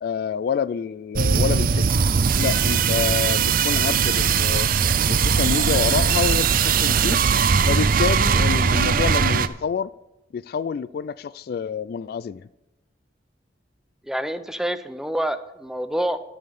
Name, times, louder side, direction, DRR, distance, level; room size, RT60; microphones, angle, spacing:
voice 1, 0.0-1.9 2.4-4.7 5.1-7.2 7.7-9.9 10.3-12.5, left 7 dB, 60° left, 18 dB, 0.3 m, -27 dB
sound 1, 1.2-9.5, right 6 dB, 55° right, 0.5 m, -20 dB
voice 2, 14.0-16.2, right 1 dB, 5° right, 10 dB, 0.5 m, -27 dB
12.5 x 5.6 x 6.8 m, 0.93 s
head